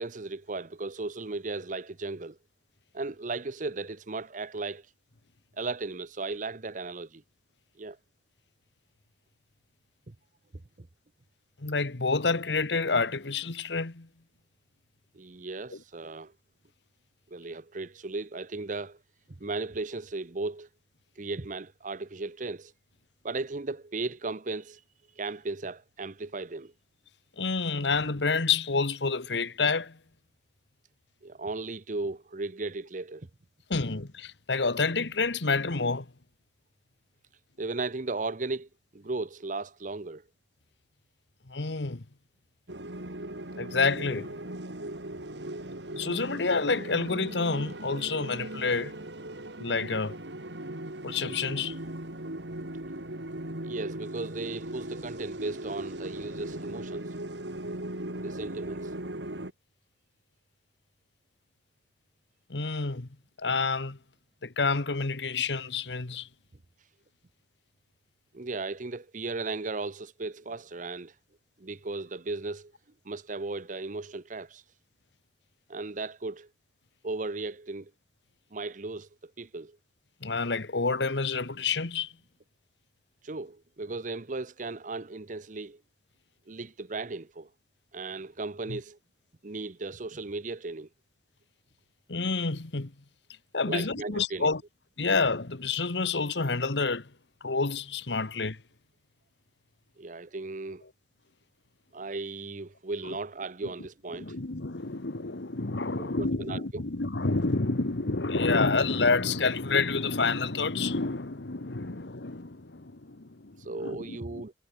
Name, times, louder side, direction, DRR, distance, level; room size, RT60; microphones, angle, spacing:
voice 1, 0.0-2.4 2.9-4.9 5.6-7.2 7.8-8.0 10.1-10.2 10.8-10.9 15.1-16.3 17.3-19.0 19.4-20.7 21.2-22.7 23.2-24.8 25.2-26.7 31.2-33.3 37.6-40.2 53.6-57.1 58.2-58.9 68.3-71.1 71.6-72.7 73.0-74.6 75.7-76.5 77.0-77.9 78.5-79.8 83.2-85.8 86.5-87.5 87.9-89.0 89.4-90.9 93.7-94.5 100.0-100.8 101.9-104.3 106.0-106.6 113.6-114.5, right 3 dB, 45° right, 0.9 m, -36 dB
voice 2, 11.6-14.1 15.7-15.8 27.4-30.0 33.7-36.1 41.5-42.0 43.6-44.3 46.0-49.0 49.6-50.2 51.0-51.8 62.5-63.1 63.4-64.0 64.4-66.3 80.2-82.1 88.7-88.8 92.1-92.9 93.5-94.6 95.0-97.1 97.4-98.6 104.2-114.4, left 4 dB, 85° left, 1.4 m, -28 dB
sound 1, 42.7-59.5, right 1 dB, 90° right, 3.9 m, -38 dB
head